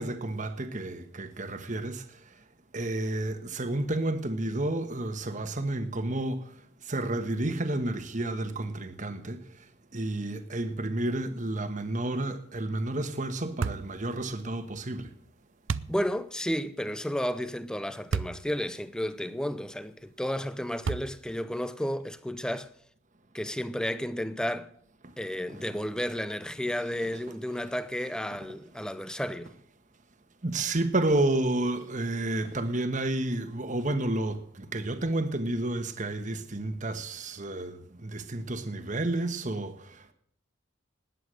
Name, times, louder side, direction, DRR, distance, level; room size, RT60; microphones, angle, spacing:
voice 1, 0.0-2.4 2.7-6.6 6.8-9.7 9.9-15.1 25.5-25.8 26.6-27.6 28.0-28.6 30.4-40.1, right 2 dB, 40° right, 1.3 m, -31 dB
sound 1, 13.6-13.9 15.7-16.0 18.1-18.4 19.0-19.1 20.8-21.3, right 5 dB, 70° right, 0.5 m, -31 dB
voice 2, 15.9-22.7 23.3-24.7 25.2-29.5, equal, 5° left, 0.6 m, -32 dB
19.5 x 8.5 x 6.4 m
head